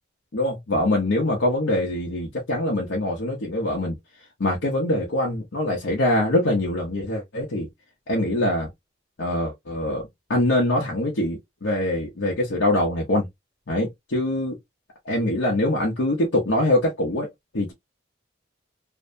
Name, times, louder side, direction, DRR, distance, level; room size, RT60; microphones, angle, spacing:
voice 1, 0.3-3.9 4.4-7.7 8.1-8.7 9.2-10.0 10.3-13.3 13.7-14.6 15.1-17.7, left 1 dB, 80° left, 0.8 m, -23 dB
2.6 x 2.2 x 2.5 m
head